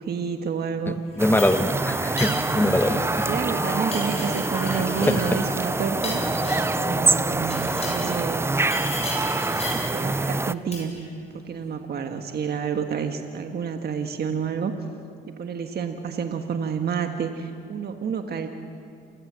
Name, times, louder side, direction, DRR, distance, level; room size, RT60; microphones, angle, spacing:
voice 1, 0.0-1.0 1.8-1.9 3.3-6.2 6.7-8.4 8.9-10.9 11.3-14.7 15.3-18.5, right 6 dB, 55° right, 6 dB, 1.6 m, -29 dB
voice 2, 0.9-3.3 4.7-5.2, left 1 dB, 10° left, 9 dB, 1.2 m, -24 dB
sound 1, 1.1-3.4 3.7-6.8 7.4-8.2 8.7-10.0 10.7-11.1, left 2 dB, 30° left, 7.7 m, -36 dB
sound 2, 1.2-10.5, right 2 dB, 10° right, 0.5 m, -25 dB
sound 3, 2.4-5.4 5.9-7.5, left 4 dB, 55° left, 4.5 m, -39 dB
28.0 x 16.5 x 7.6 m, 2.4 s
cardioid pair, 90°, 20 cm